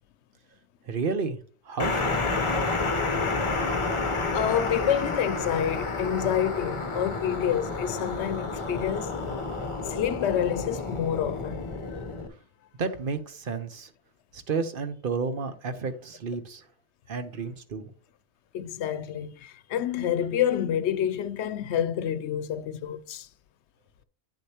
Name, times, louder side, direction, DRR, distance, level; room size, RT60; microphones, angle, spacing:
voice 1, 0.9-1.4 1.7-2.2 12.8-13.9 14.3-16.6 17.1-17.9, right 4 dB, 55° right, 1.0 m, -31 dB
sound 1, 1.8-12.3, left 3 dB, 30° left, 0.8 m, -30 dB
voice 2, 4.3-9.2 9.8-11.6 11.9-12.1 18.5-23.3, left 9 dB, 80° left, 0.8 m, -28 dB
8.5 x 6.6 x 2.9 m
omnidirectional pair, 1.1 m